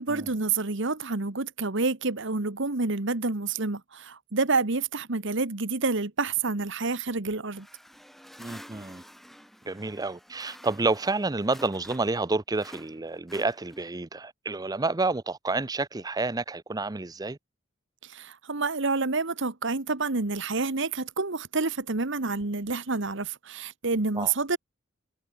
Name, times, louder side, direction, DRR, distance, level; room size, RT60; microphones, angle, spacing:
voice 1, 0.0-7.7 18.0-24.6, right 3 dB, 65° right, 1.6 m, -28 dB
sound 1, 7.5-12.3 12.6-14.0, equal, ahead, 5.1 m, -49 dB
voice 2, 8.4-9.0 9.6-17.4 24.2-24.3, right 3 dB, 20° right, 0.6 m, -29 dB
head